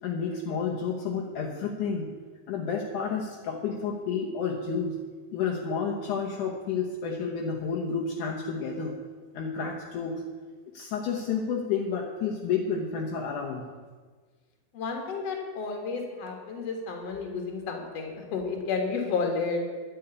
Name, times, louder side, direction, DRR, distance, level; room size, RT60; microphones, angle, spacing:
voice 1, 0.0-2.1 2.5-4.9 5.3-8.9 9.3-10.1 10.7-13.7, left 6 dB, 75° left, -1 dB, 1.9 m, -30 dB
voice 2, 14.7-19.6, left 4 dB, 50° left, 3 dB, 2.2 m, -31 dB
10.5 x 7.0 x 9.5 m, 1.5 s
omnidirectional pair, 4.9 m